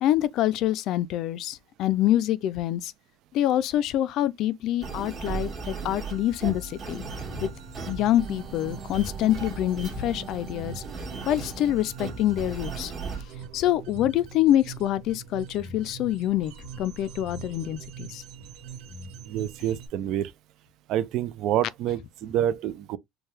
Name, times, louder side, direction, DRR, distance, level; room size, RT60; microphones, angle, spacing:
voice 1, 0.0-2.9 3.3-7.0 7.4-7.5 7.9-10.8 11.3-12.9 13.5-16.5 16.8-18.2, left 13 dB, 60° left, 0.4 m, -26 dB
sound 1, 4.8-13.2, right 4 dB, 35° right, 1.4 m, -37 dB
sound 2, 6.9-19.9, right 5 dB, 80° right, 1.3 m, -43 dB
voice 2, 19.2-20.3 20.9-23.0, right 11 dB, 60° right, 0.5 m, -27 dB
4.5 x 2.3 x 3.3 m
cardioid pair, 135°, 0 cm